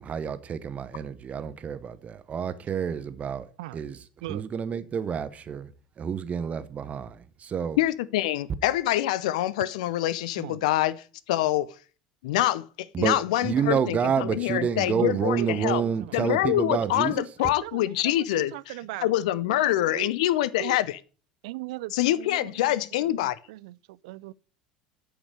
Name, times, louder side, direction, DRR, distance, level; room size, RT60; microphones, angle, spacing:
voice 1, 0.0-3.5 3.7-4.0 4.3-5.7 6.0-7.8 12.9-13.2 13.4-17.2, right 7 dB, 35° right, 1.0 m, -29 dB
voice 2, 7.8-10.9 11.3-11.7 12.2-15.8 16.1-18.7 19.0-21.0 21.9-23.4, left 14 dB, 75° left, 0.5 m, -25 dB
voice 3, 10.4-10.7 15.0-16.1 16.4-17.0 17.4-19.1 19.5-20.1 20.6-20.8 21.4-24.3, right 18 dB, 70° right, 0.3 m, -40 dB
8.8 x 5.2 x 6.5 m
hypercardioid pair, 70°, 4 cm